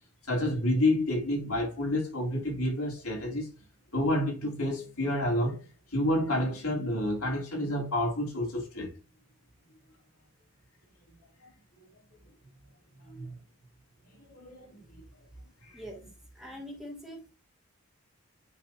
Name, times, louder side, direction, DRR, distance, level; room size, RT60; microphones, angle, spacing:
voice 1, 0.3-3.5 3.9-5.6 5.9-8.9 11.4-11.5 13.1-13.3 14.3-15.0 15.7-15.8, left 1 dB, 85° left, 3.1 m, -29 dB
voice 2, 16.3-17.3, equal, ahead, 1.6 m, -43 dB
8.8 x 3.9 x 2.8 m
head